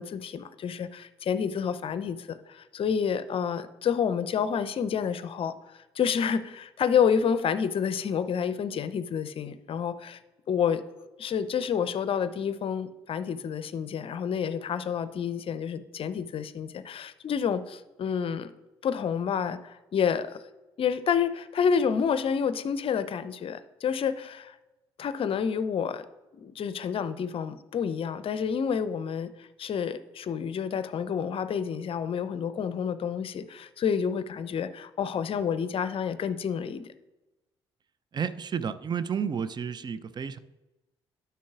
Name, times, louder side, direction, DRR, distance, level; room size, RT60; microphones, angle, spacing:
voice 1, 0.0-5.5 6.0-10.2 10.5-10.8 11.2-18.5 18.8-20.4 20.8-24.5 25.0-26.0 26.3-36.9, left 7 dB, 45° left, 0.6 m, -29 dB
voice 2, 38.1-40.4, right 7 dB, 35° right, 0.5 m, -31 dB
12.0 x 5.6 x 2.4 m
figure-of-eight pair, 45°, 13 cm